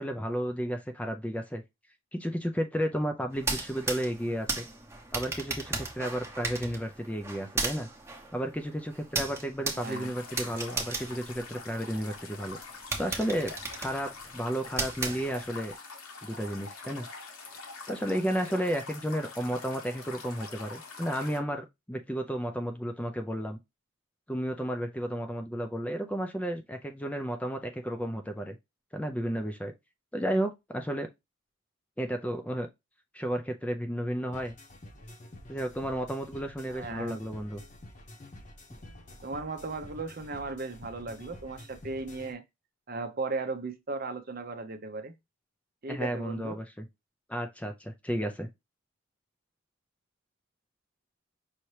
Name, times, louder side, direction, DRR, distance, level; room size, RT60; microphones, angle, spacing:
voice 1, 0.0-1.6 2.1-4.6 5.1-7.9 8.3-12.6 13.0-13.5 13.8-15.7 16.2-17.1 17.9-23.6 24.3-28.6 28.9-29.7 30.1-31.1 32.0-32.7 33.1-34.5 35.5-37.6 45.9-46.9 47.3-48.5, equal, 5° left, 0.4 m, -32 dB
sound 1, 3.3-12.1 12.5-12.6 12.9-15.7, right 3 dB, 10° right, 0.9 m, -36 dB
voice 2, 9.7-10.1 36.7-37.2 39.2-42.4 42.9-45.1 45.8-46.6, right 3 dB, 40° right, 0.6 m, -36 dB
sound 2, 9.8-21.4, left 4 dB, 80° left, 1.4 m, -45 dB
sound 3, 34.3-42.3, left 1 dB, 35° left, 0.9 m, -49 dB
5.6 x 2.8 x 3.2 m
head